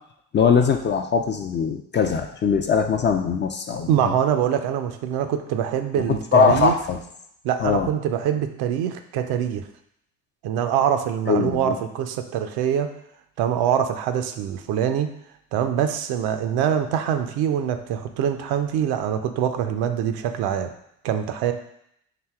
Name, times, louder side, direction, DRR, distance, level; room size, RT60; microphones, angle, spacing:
voice 1, 0.3-4.1 6.3-7.0 7.6-7.9 11.3-11.8, left 6 dB, 30° left, 5 dB, 0.4 m, -21 dB
voice 2, 3.9-6.8 7.4-9.6 10.4-12.9 13.4-15.1 15.5-20.7 21.0-21.5, right 9 dB, 65° right, 7 dB, 0.5 m, -24 dB
5.8 x 2.8 x 2.3 m, 0.74 s
hypercardioid pair, 50°, 42 cm